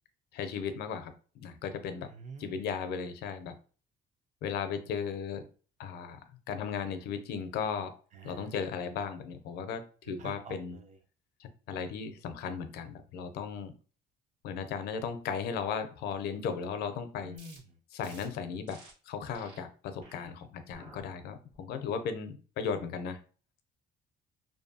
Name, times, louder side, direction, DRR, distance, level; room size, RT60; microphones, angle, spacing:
voice 1, 0.3-1.1 1.4-2.1 2.4-3.5 4.4-5.5 5.8-6.2 6.5-8.0 8.2-10.8 11.4-13.7 14.4-17.3 17.9-18.8 19.1-23.2, left 6 dB, 75° left, 9 dB, 0.5 m, -36 dB
voice 2, 2.0-2.6 8.1-8.6 9.6-9.7 10.2-11.0 17.2-17.8, right 3 dB, 45° right, 6 dB, 0.5 m, -48 dB
sound 1, 17.3-17.6 18.0-18.3 18.7-18.9 19.3-19.6 20.0-20.3 20.7-21.0 21.5-21.9, right 2 dB, 85° right, 1.4 m, -53 dB
2.6 x 2.2 x 2.6 m, 0.38 s
cardioid pair, 110°, 17 cm